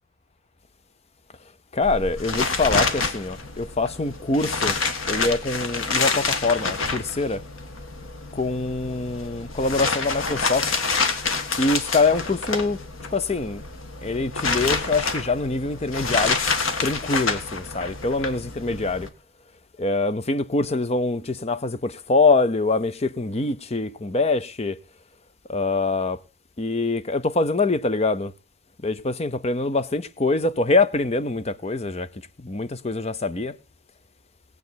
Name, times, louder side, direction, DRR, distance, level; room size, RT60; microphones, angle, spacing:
voice 1, 1.7-4.8 5.1-7.4 8.3-10.9 11.6-12.8 13.1-13.6 14.0-16.4 16.8-19.1 19.8-24.8 25.5-26.2 26.6-28.3 28.8-32.1 32.4-33.6, left 3 dB, 30° left, 0.7 m, -24 dB
sound 1, 1.8-19.1, left 4 dB, 85° left, 1.7 m, -28 dB
19.5 x 8.1 x 4.1 m
head